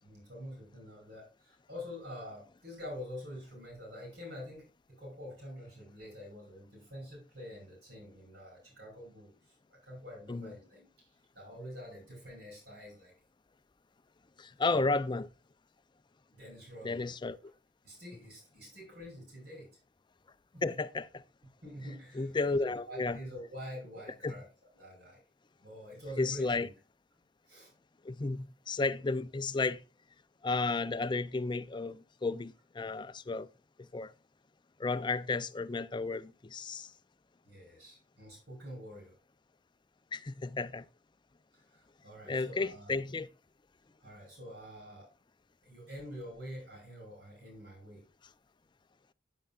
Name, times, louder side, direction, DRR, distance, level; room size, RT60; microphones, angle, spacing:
voice 1, 0.0-10.9 11.3-13.2 14.6-14.8 16.3-17.1 17.8-19.7 20.5-20.6 21.6-24.5 24.8-25.2 25.6-26.7 27.5-27.7 37.4-39.2 41.5-42.9 44.0-45.1 45.6-48.0, equal, 65° right, 5.5 m, -47 dB
voice 2, 14.4-15.3 16.8-17.4 20.6-21.2 22.1-23.2 24.2-24.3 26.2-26.7 28.0-29.8 30.4-33.5 33.8-34.1 34.8-36.9 40.1-40.9 42.3-43.3, left 3 dB, 25° left, 0.5 m, -33 dB
9.6 x 9.1 x 2.4 m
head